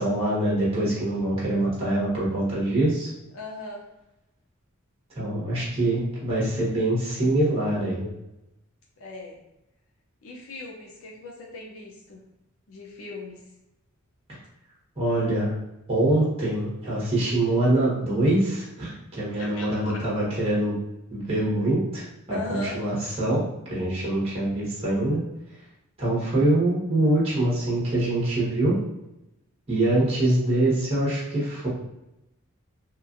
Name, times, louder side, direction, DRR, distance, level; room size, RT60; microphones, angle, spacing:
voice 1, 0.0-3.1 5.1-8.1 15.0-15.5 15.9-20.8 21.1-23.4 23.7-25.2 26.0-28.7 29.7-31.7, right 1 dB, 30° right, -7 dB, 1.0 m, -24 dB
voice 2, 3.3-3.8 9.0-9.4 10.2-12.2 12.7-13.4 19.4-20.0 22.3-22.8, left 2 dB, 70° left, -1 dB, 0.5 m, -38 dB
2.9 x 2.4 x 2.5 m, 0.90 s
head